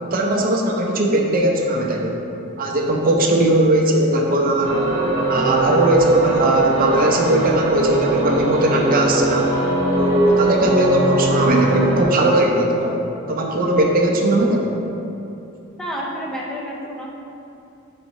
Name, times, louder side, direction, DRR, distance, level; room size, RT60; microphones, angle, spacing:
voice 1, 0.0-2.2 2.6-4.8 5.3-9.5 9.9-13.0 13.3-14.8, right 1 dB, 45° right, 0 dB, 0.6 m, -18 dB
sound 1, 4.6-12.0, right 2 dB, 70° right, 0.9 m, -21 dB
voice 2, 15.8-17.1, equal, 5° left, -4 dB, 0.5 m, -29 dB
4.5 x 3.9 x 5.2 m, 2.8 s
head